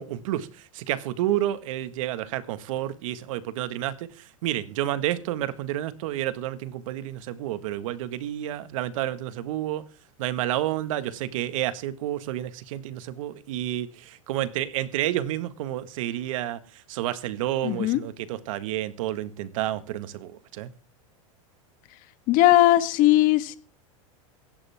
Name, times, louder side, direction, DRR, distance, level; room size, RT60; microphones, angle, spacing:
voice 1, 0.0-9.8 10.2-20.7, right 13 dB, 70° right, 13 dB, 1.7 m, -30 dB
voice 2, 17.6-18.0 22.3-23.6, left 15 dB, 50° left, 13 dB, 1.6 m, -19 dB
17.0 x 13.5 x 3.6 m, 0.37 s
hypercardioid pair, 110°, 18 cm